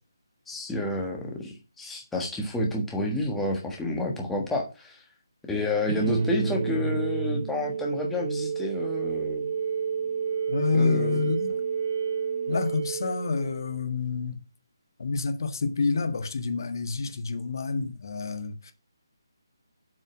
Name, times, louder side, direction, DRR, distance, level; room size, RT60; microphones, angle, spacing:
voice 1, 0.5-5.0 5.5-9.5 10.7-11.3, left 1 dB, 5° left, 1.5 m, -29 dB
sound 1, 5.9-13.8, right 6 dB, 40° right, 1.0 m, -30 dB
voice 2, 10.5-11.6 12.5-14.4 15.0-18.7, left 4 dB, 55° left, 1.6 m, -28 dB
7.7 x 5.5 x 6.1 m
figure-of-eight pair, 155°, 2 cm